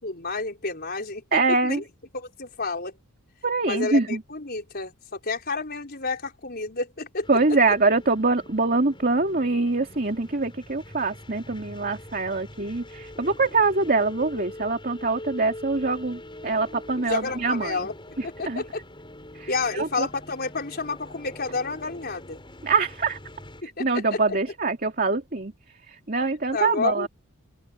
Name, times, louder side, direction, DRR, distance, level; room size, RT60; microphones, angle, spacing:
voice 1, 0.0-1.8 2.1-3.0 3.6-7.3 17.0-17.9 18.2-18.8 19.5-22.4 23.6-24.4 26.5-27.1, left 3 dB, 45° left, 4.7 m, -30 dB
voice 2, 1.3-1.8 3.4-4.2 7.3-17.9 18.2-18.6 19.4-20.1 22.6-23.2 23.8-25.5 26.1-27.1, right 3 dB, 40° right, 2.5 m, -24 dB
sound 1, 7.2-23.6, left 1 dB, 25° left, 6.5 m, -43 dB
open air
head